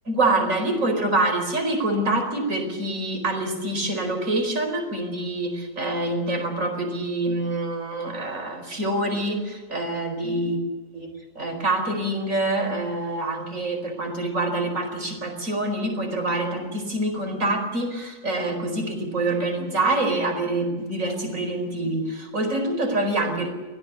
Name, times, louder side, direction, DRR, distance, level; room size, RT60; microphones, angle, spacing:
voice 1, 0.1-10.6 10.9-23.5, right 2 dB, 45° right, 4 dB, 5.0 m, -26 dB
24.5 x 17.5 x 8.3 m, 1.2 s
omnidirectional pair, 1.9 m